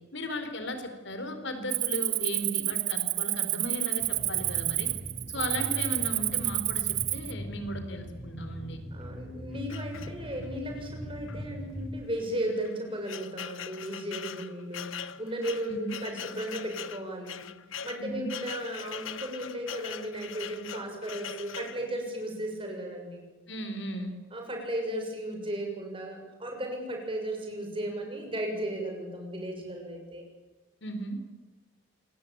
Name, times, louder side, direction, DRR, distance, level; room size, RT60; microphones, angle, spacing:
voice 1, 0.1-4.9 5.3-8.8 15.7-16.0 18.0-18.3 23.5-24.1 30.8-31.2, equal, 65° left, 8 dB, 4.4 m, -36 dB
Cricket, 1.7-7.3, right 18 dB, 80° right, 0.9 m, -29 dB
sound 1, 4.0-12.0, equal, ahead, 5.9 m, -41 dB
voice 2, 8.9-17.5 17.8-23.3 24.3-30.2, right 1 dB, 25° right, 2 dB, 6.8 m, -35 dB
sound 2, 9.7-10.6 11.3-11.4 11.7-11.8 12.5-21.8, left 7 dB, 85° left, 1.1 m, -41 dB
27.5 x 22.5 x 8.9 m, 1.2 s
head